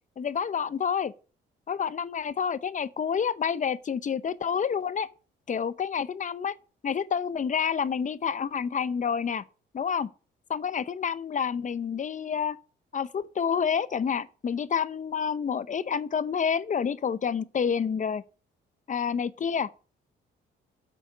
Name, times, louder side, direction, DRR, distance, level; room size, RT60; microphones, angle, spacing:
voice 1, 0.2-1.1 1.7-5.1 5.5-6.6 6.8-9.4 9.7-10.1 10.5-12.6 12.9-18.2 18.9-19.7, left 7 dB, 40° left, 0.8 m, -28 dB
8.5 x 6.3 x 8.1 m
cardioid pair, 90°, 20 cm